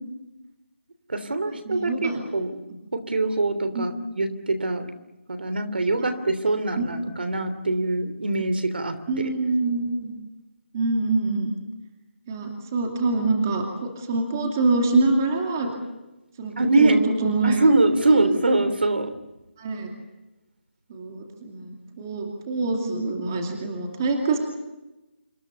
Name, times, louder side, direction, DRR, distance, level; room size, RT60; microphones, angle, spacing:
voice 1, 1.1-2.6 2.9-4.9 5.3-9.3 16.6-17.0 17.4-19.1, right 2 dB, 55° right, 11 dB, 3.2 m, -23 dB
voice 2, 1.6-2.2 3.7-4.1 6.0-6.1 6.8-6.9 9.1-10.1 10.7-11.5 12.3-15.7 16.4-16.5 16.8-17.6 18.1-18.4 19.6-19.9 20.9-24.4, right 3 dB, 15° right, 2 dB, 2.5 m, -25 dB
27.5 x 24.0 x 7.0 m, 1.0 s
hypercardioid pair, 180°, 6 cm